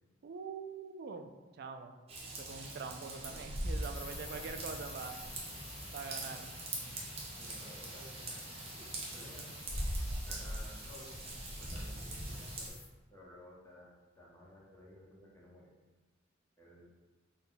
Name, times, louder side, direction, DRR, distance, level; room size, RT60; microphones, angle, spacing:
voice 1, 0.2-2.0 2.3-5.2 5.9-6.5, right 5 dB, 55° right, 7 dB, 0.3 m, -44 dB
Raindrop / Vehicle horn car horn honking / Trickle dribble, 2.1-12.7, right 1 dB, 30° right, 0.7 m, -41 dB
sound 1, 3.9-12.9, left 5 dB, 65° left, 0.6 m, -53 dB
voice 2, 7.4-8.4 8.7-9.5 10.2-11.2 11.6-12.8 13.1-13.9 14.2-15.7 16.6-16.9, equal, 15° left, -5 dB, 0.8 m, -55 dB
3.8 x 2.2 x 4.0 m, 1.2 s
head